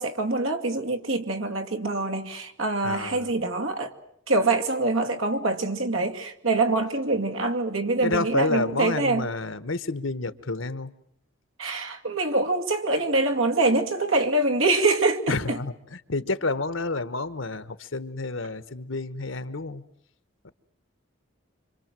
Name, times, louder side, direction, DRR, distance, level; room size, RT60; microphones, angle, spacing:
voice 1, 0.0-3.9 4.3-9.3 11.6-15.6, right 2 dB, 90° right, 2.5 m, -25 dB
voice 2, 2.8-3.3 8.0-10.9 15.3-19.8 20.4-20.5, left 3 dB, 80° left, 1.3 m, -29 dB
26.5 x 26.0 x 7.6 m
head